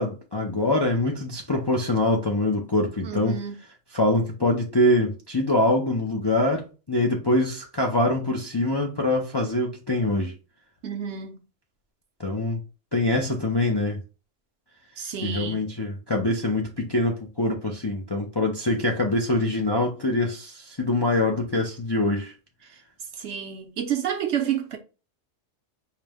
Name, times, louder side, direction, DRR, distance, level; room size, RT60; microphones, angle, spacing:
voice 1, 0.0-3.4 3.9-10.3 12.2-12.6 12.9-14.0 15.2-22.3, left 1 dB, 35° left, 0.4 m, -24 dB
voice 2, 3.0-3.5 10.8-11.4 15.0-15.7 23.2-24.8, right 8 dB, 65° right, 1.0 m, -29 dB
4.7 x 2.1 x 3.4 m
omnidirectional pair, 1.3 m